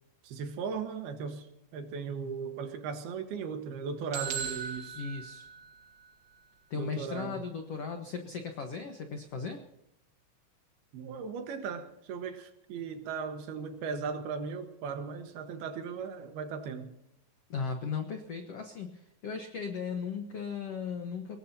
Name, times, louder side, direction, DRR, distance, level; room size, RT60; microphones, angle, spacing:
voice 1, 0.2-1.5 1.7-5.0 6.7-7.4 10.9-16.9, right 6 dB, 70° right, 7 dB, 3.2 m, -37 dB
sound 1, 4.1-6.1, right 7 dB, 85° right, 3.5 m, -38 dB
voice 2, 4.9-5.5 6.7-9.6 17.5-21.4, left 5 dB, 85° left, 5 dB, 1.3 m, -37 dB
24.0 x 20.0 x 2.8 m, 0.84 s
omnidirectional pair, 4.8 m